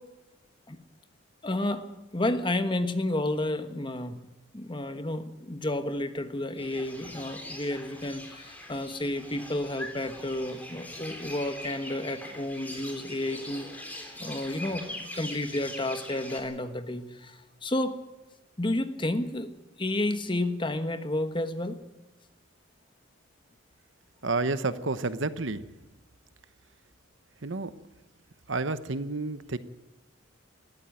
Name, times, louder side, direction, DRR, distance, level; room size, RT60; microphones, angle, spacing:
voice 1, 1.4-4.2 4.5-13.9 14.2-18.0 18.6-19.5 19.8-21.8, left 1 dB, 25° left, 9 dB, 1.3 m, -31 dB
sound 1, 6.6-16.4, left 1 dB, 10° left, 3.6 m, -42 dB
voice 2, 24.2-25.6 27.4-27.7 28.5-29.6, right 3 dB, 65° right, 13 dB, 1.0 m, -30 dB
20.5 x 14.0 x 9.2 m, 1.0 s
head